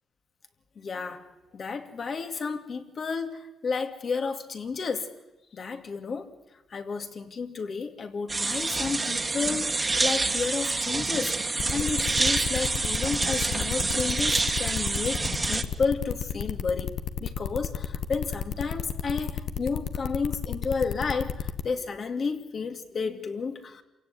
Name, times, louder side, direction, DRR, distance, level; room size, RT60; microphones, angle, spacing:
voice 1, 0.8-1.2 1.5-5.1 5.5-6.3 6.7-11.4 11.7-16.9 17.2-23.8, left 5 dB, 45° left, 6 dB, 2.5 m, -31 dB
sound 1, 8.3-15.6, right 3 dB, 25° right, 2.0 m, -27 dB
sound 2, 11.6-21.6, left 8 dB, 65° left, 1.3 m, -32 dB
28.0 x 17.0 x 9.6 m, 1.0 s
cardioid pair, 90°, 0 cm